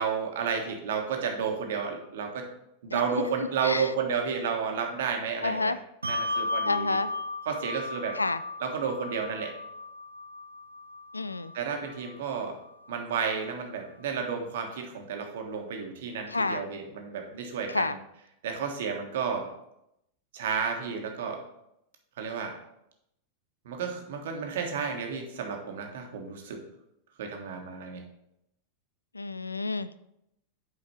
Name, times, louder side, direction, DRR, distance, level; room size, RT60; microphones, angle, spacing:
voice 1, 0.0-2.5 2.8-5.7 6.1-7.0 7.5-8.1 8.6-9.5 11.5-12.6 12.9-17.9 18.4-19.5 20.3-21.4 22.2-22.5 23.6-26.6 27.2-28.0, right 6 dB, 55° right, 3 dB, 1.3 m, -32 dB
voice 2, 5.4-5.8 6.6-7.1 8.1-8.4 11.1-11.5 16.3-16.6 17.7-18.0 29.1-29.9, left 3 dB, 80° left, 15 dB, 0.3 m, -29 dB
Bell, 6.0-12.9, left 2 dB, 75° right, 0.4 m, -36 dB
8.1 x 5.0 x 4.4 m, 0.81 s
figure-of-eight pair, 90°, 0 cm